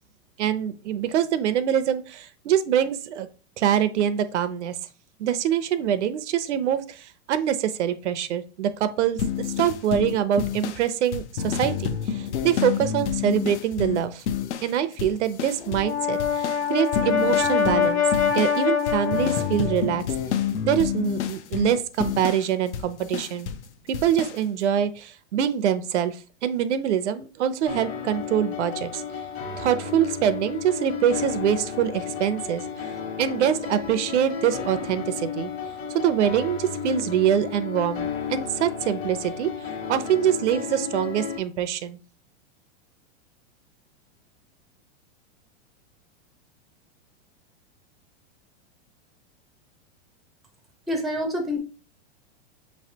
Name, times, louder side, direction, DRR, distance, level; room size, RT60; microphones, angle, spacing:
voice 1, 0.4-3.3 3.6-4.8 5.2-14.2 14.6-18.0 18.3-20.0 20.6-23.5 23.9-26.2 26.4-29.0 29.6-32.6 33.2-35.5 35.9-39.5 39.9-42.0, right 9 dB, 90° right, 13 dB, 0.7 m, -24 dB
sound 1, 9.2-14.7 15.0-15.9 16.2-23.7 23.9-24.4, left 8 dB, 85° left, 0.7 m, -29 dB
Brass instrument, 15.6-19.9, left 7 dB, 65° left, 1.2 m, -24 dB
sound 2, 27.7-41.4, left 6 dB, 45° left, 1.2 m, -33 dB
voice 2, 50.9-51.6, left 1 dB, ahead, 2 dB, 0.4 m, -26 dB
5.9 x 3.2 x 2.8 m, 0.36 s
supercardioid pair, 140°, 34 cm